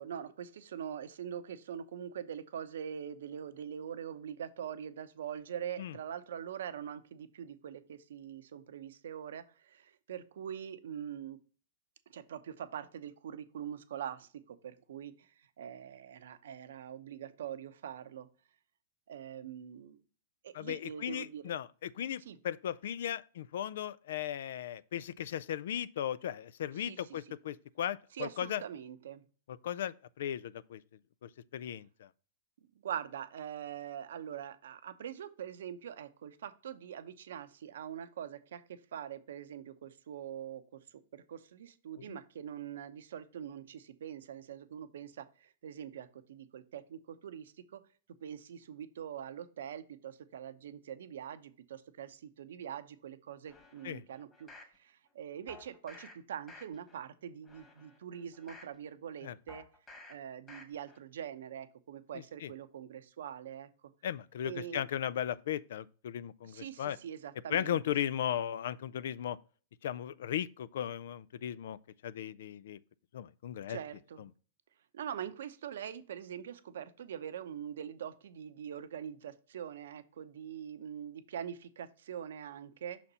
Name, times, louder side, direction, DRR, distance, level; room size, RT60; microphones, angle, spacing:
voice 1, 0.0-11.4 12.1-18.3 19.1-20.0 20.4-21.4 22.2-22.4 26.7-27.4 28.1-29.2 32.8-47.8 48.2-59.6 60.1-63.7 64.4-64.8 66.4-67.8 73.7-74.3 74.9-83.0, right 9 dB, 75° right, 0.7 m, -43 dB
voice 2, 20.5-28.6 29.5-30.8 31.2-32.1 42.1-42.2 53.8-54.0 59.2-59.3 62.4-62.5 64.0-67.0 67.5-69.4 69.8-71.8 72.0-72.8 73.1-73.8, left 10 dB, 70° left, 0.3 m, -37 dB
sound 1, 53.5-54.7 55.5-56.1 56.5-57.0 57.4-58.7 59.5-60.1 60.5-61.0 61.4-61.5, left 3 dB, 20° left, 1.9 m, -54 dB
5.8 x 4.1 x 5.4 m
hypercardioid pair, 110°, 0 cm